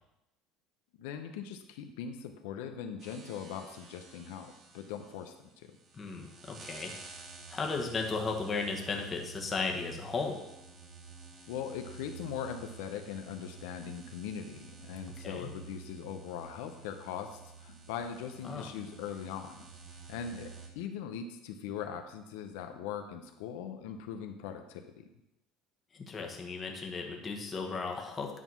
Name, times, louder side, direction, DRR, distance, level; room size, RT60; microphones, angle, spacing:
voice 1, 1.0-5.7 11.5-19.6 19.9-25.0, left 8 dB, 85° left, 6 dB, 0.7 m, -41 dB
sound 1, 3.0-20.7, right 5 dB, 35° right, 1.3 m, -50 dB
voice 2, 5.9-6.9 7.5-10.4 15.2-15.5 18.4-18.7 25.9-28.4, left 4 dB, 25° left, 1 dB, 1.2 m, -35 dB
9.6 x 3.6 x 6.1 m, 0.91 s
cardioid pair, 140°, 0 cm